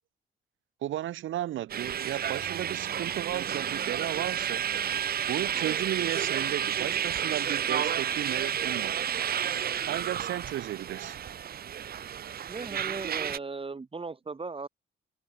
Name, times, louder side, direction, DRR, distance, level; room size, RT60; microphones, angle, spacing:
voice 1, 0.8-4.7 5.3-9.0 9.9-11.2, right 13 dB, 75° right, 2.3 m, -34 dB
sound 1, 1.7-13.4, right 9 dB, 50° right, 0.9 m, -31 dB
voice 2, 12.5-14.7, right 4 dB, 25° right, 4.3 m, -37 dB
cardioid pair, 90°, 20 cm